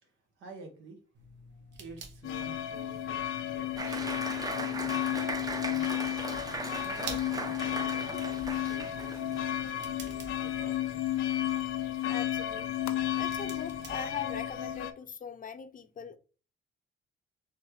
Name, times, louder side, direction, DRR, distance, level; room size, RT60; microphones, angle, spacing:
voice 1, 0.0-1.0 1.8-6.1 6.8-11.0, right 3 dB, 80° right, 1.4 m, -50 dB
sound 1, 1.1-14.7, right 2 dB, 65° right, 1.1 m, -50 dB
sound 2, 2.2-14.9, left 11 dB, 90° left, 0.6 m, -33 dB
Applause, 3.8-9.5, right 2 dB, 20° right, 0.7 m, -38 dB
voice 2, 12.1-16.2, left 7 dB, 45° left, 0.6 m, -41 dB
4.2 x 3.3 x 3.1 m
cardioid pair, 90°, 20 cm